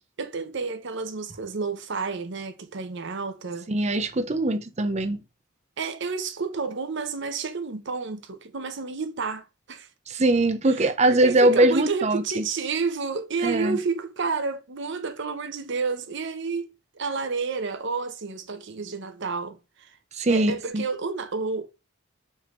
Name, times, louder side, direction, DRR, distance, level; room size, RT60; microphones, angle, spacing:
voice 1, 0.2-3.7 5.8-9.9 10.7-10.8 11.1-20.0 20.3-21.7, right 4 dB, 60° right, 0.9 m, -30 dB
voice 2, 3.7-5.2 10.1-12.4 13.4-13.8 20.1-20.8, right 2 dB, 35° right, 0.6 m, -22 dB
5.4 x 3.5 x 2.5 m
head